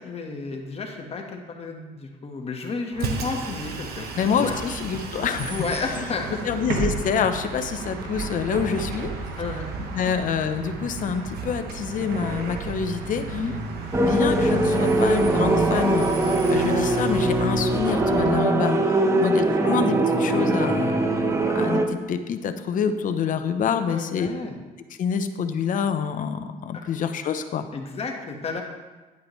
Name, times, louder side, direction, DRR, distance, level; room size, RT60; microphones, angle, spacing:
voice 1, 0.0-4.6 5.5-6.4 9.4-9.7 13.3-13.6 19.0-19.3 23.9-24.5 27.7-28.6, left 4 dB, 35° left, 2 dB, 1.4 m, -32 dB
Bus, 2.9-18.3, right 4 dB, 70° right, 1.3 m, -33 dB
voice 2, 4.2-13.5 14.0-16.1 16.5-21.2 21.5-24.3 25.0-27.6, left 6 dB, 50° left, 9 dB, 0.8 m, -27 dB
sound 1, 13.9-21.9, right 2 dB, 15° right, 0.8 m, -21 dB
10.5 x 8.4 x 3.2 m, 1.2 s
cardioid pair, 110°, 17 cm